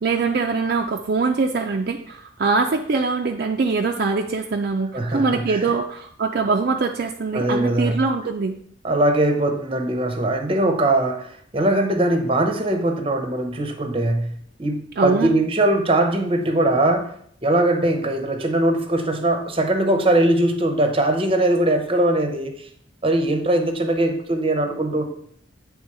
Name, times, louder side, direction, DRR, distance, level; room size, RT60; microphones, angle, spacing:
voice 1, 0.0-8.6 15.0-15.3, right 4 dB, 50° right, 3 dB, 0.4 m, -23 dB
voice 2, 4.9-5.7 7.3-8.0 8.8-14.3 14.6-17.1 17.4-22.7 23.0-25.0, right 1 dB, 30° right, 6 dB, 0.7 m, -21 dB
8.8 x 3.4 x 4.7 m, 0.63 s
head